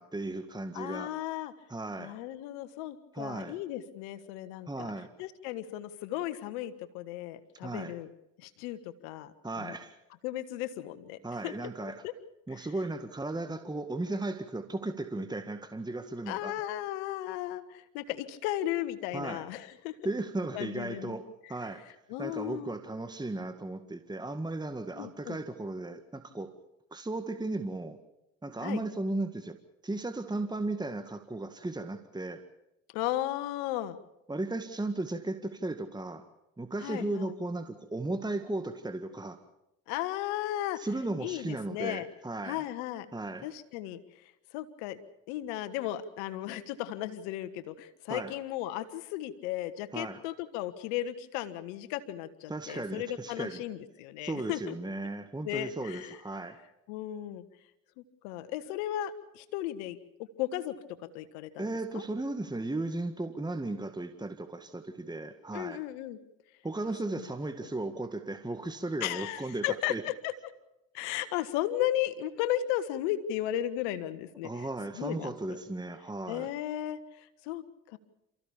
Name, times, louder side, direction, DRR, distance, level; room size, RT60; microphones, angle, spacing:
voice 1, 0.0-1.1 1.7-2.1 3.1-3.6 4.7-5.1 7.6-7.9 9.4-10.0 11.2-12.1 12.5-16.5 19.1-19.5 20.0-21.9 22.2-26.5 26.9-28.0 28.4-29.6 29.8-32.4 34.3-36.3 36.6-39.4 40.8-42.6 43.1-43.5 48.1-48.4 49.9-50.2 52.5-53.6 54.2-56.6 61.6-65.8 66.6-70.0 74.4-76.5, right 2 dB, 10° right, 8 dB, 1.8 m, -36 dB
voice 2, 0.7-1.5 2.0-4.9 5.2-8.1 8.4-9.7 10.2-11.2 11.4-11.5 12.0-12.1 16.3-20.1 20.5-21.2 22.1-22.7 25.0-25.4 28.6-28.8 32.9-34.0 36.8-37.3 39.9-40.8 41.2-42.1 42.4-43.1 43.4-44.0 44.5-45.0 45.3-54.8 55.4-56.2 56.9-57.4 58.0-60.0 60.4-60.7 61.1-61.7 61.9-62.0 65.5-66.2 69.0-70.3 70.9-74.7 75.0-75.6 76.3-78.0, left 13 dB, 85° left, 14 dB, 1.4 m, -35 dB
29.0 x 15.0 x 7.2 m, 0.90 s
hypercardioid pair, 60°, 34 cm